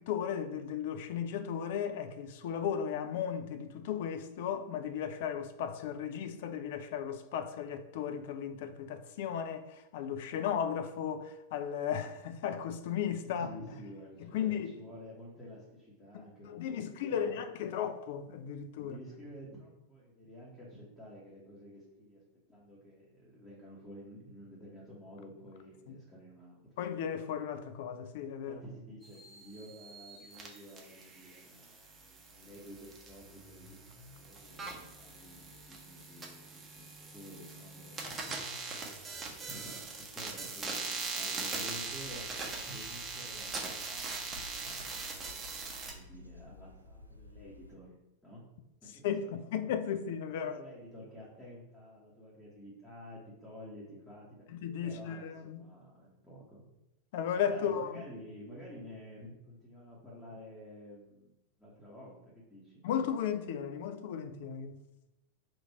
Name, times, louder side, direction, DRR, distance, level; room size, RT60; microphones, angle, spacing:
voice 1, 0.0-13.5 14.3-14.7 16.1-19.0 25.9-26.0 26.8-28.6 38.0-38.4 49.0-50.6 54.6-55.6 57.1-57.9 62.8-64.8, left 8 dB, 50° left, 0.4 m, -35 dB
voice 2, 13.2-17.4 18.8-22.2 22.5-26.6 28.4-31.8 32.3-33.8 34.2-38.2 39.4-42.2 42.7-44.1 44.6-45.0 45.9-47.9 48.2-48.5 48.8-49.7 50.2-54.4 54.8-56.6 57.5-61.3 61.6-62.8, equal, 10° left, 0.9 m, -51 dB
sound 1, 29.0-45.9, right 4 dB, 20° right, 0.7 m, -42 dB
sound 2, 41.6-47.8, left 1 dB, 85° right, 0.4 m, -53 dB
3.0 x 2.5 x 4.3 m
figure-of-eight pair, 90°, 0 cm